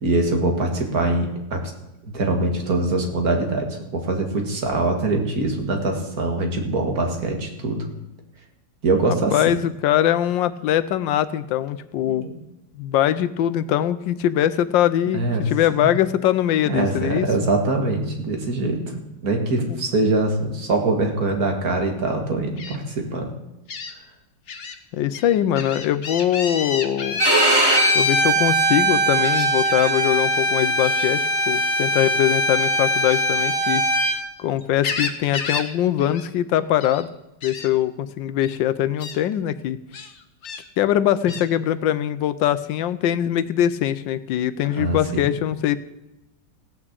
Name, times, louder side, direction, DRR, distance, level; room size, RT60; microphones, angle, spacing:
voice 1, 0.0-1.7 2.1-7.8 8.8-9.4 12.0-12.3 15.1-15.5 16.7-23.3 44.8-45.3, right 2 dB, 55° right, 3 dB, 2.3 m, -23 dB
voice 2, 9.1-12.3 12.8-17.3 19.7-19.8 24.9-27.2 27.9-33.8 34.4-37.1 37.4-39.8 40.8-45.8, left 11 dB, 90° left, 14 dB, 1.4 m, -22 dB
Gull seagull, 22.6-22.8 23.7-23.9 24.5-24.7 25.1-27.9 29.2-29.9 30.8-31.1 33.0-34.2 34.6-35.7 36.0-36.2 36.6-37.0 37.4-37.7 38.4-38.6 39.0-39.2 39.9-40.6 41.3-41.5, left 5 dB, 45° left, 1.2 m, -31 dB
Bowed string instrument, 27.2-34.2, right 1 dB, 15° right, 1.7 m, -20 dB
16.0 x 6.0 x 8.1 m, 0.95 s
omnidirectional pair, 2.0 m